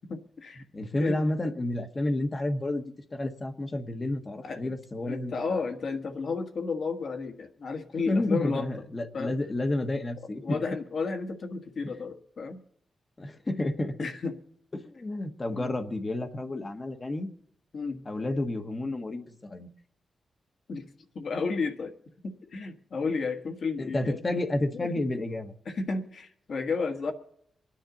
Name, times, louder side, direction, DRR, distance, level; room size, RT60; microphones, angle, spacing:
voice 1, 0.1-0.6 1.0-1.2 4.4-4.7 5.0-8.7 9.1-9.3 10.4-12.6 14.0-14.3 15.5-15.7 17.7-18.0 20.7-20.9 21.1-21.9 22.2-24.2 24.7-24.9 25.7-27.1, left 4 dB, 50° left, 6 dB, 1.4 m, -32 dB
voice 2, 0.7-5.7 8.1-10.6 11.8-11.9 13.2-14.0 14.7-17.3 18.0-19.7 23.8-25.5, left 1 dB, 20° left, 5 dB, 1.2 m, -30 dB
26.5 x 10.0 x 3.9 m, 0.68 s
wide cardioid pair, 175°, 0 cm